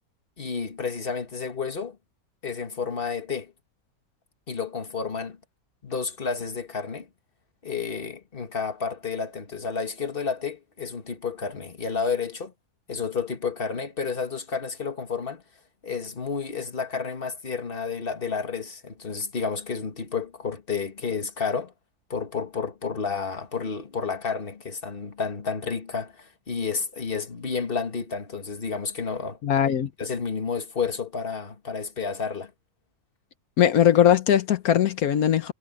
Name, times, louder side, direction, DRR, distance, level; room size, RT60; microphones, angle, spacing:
voice 1, 0.4-2.0 2.4-3.5 4.5-5.4 5.8-7.1 7.6-12.5 12.9-15.4 15.8-21.7 22.1-29.4 29.6-29.7 30.0-32.5, left 5 dB, 40° left, 1.9 m, -31 dB
voice 2, 29.4-29.9 33.6-35.5, left 10 dB, 75° left, 1.4 m, -20 dB
omnidirectional pair, 1.6 m